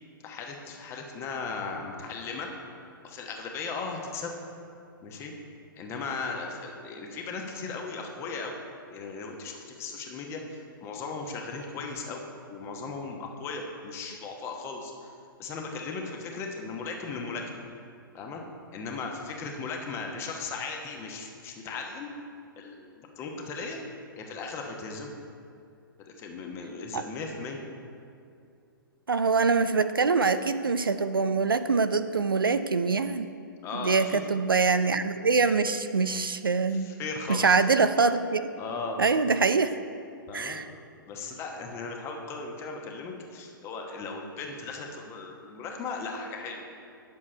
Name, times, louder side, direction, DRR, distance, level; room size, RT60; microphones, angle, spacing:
voice 1, 0.2-2.5 3.0-4.3 5.0-5.3 5.8-8.6 8.9-15.1 15.4-17.6 18.1-18.4 18.7-22.1 22.6-23.8 24.2-25.1 26.0-27.6 33.6-34.2 36.7-37.6 38.6-39.0 40.3-40.6 41.1-46.6, left 4 dB, 20° left, 2 dB, 1.1 m, -37 dB
voice 2, 29.1-33.3 33.7-36.9 37.3-38.4 39.0-39.7 40.3-40.7, right 4 dB, 75° right, 11 dB, 0.5 m, -24 dB
9.7 x 7.5 x 4.4 m, 2.5 s
figure-of-eight pair, 115°, 12 cm